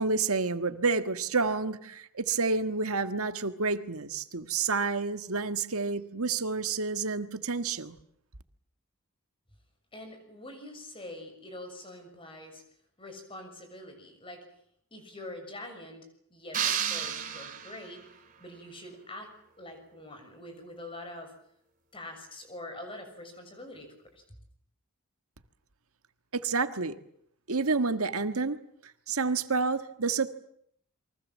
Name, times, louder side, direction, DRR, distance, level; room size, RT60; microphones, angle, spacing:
voice 1, 0.0-8.0 26.3-27.0 27.5-28.6 29.1-30.3, right 4 dB, 85° right, 10 dB, 1.6 m, -29 dB
voice 2, 9.9-12.6 13.0-14.4 14.9-18.0 18.4-19.3 19.6-21.3 21.9-24.2, left 1 dB, 25° left, 6 dB, 6.6 m, -45 dB
sound 1, 16.5-18.1, right 8 dB, 40° right, 2.9 m, -32 dB
29.0 x 24.0 x 7.5 m, 0.67 s
head